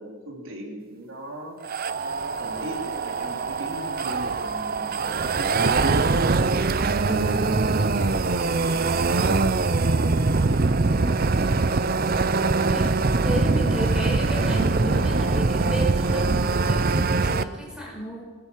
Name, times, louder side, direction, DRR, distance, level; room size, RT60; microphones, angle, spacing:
voice 1, 0.0-1.6 2.0-6.1 7.0-10.1 10.5-11.7, right 1 dB, 65° right, 0 dB, 4.0 m, -38 dB
sound 1, 1.6-17.4, right 3 dB, 45° right, 0.7 m, -23 dB
voice 2, 7.1-7.5 12.7-12.9 13.2-18.2, equal, 5° right, -1 dB, 5.7 m, -32 dB
24.0 x 18.0 x 7.5 m, 1.4 s
head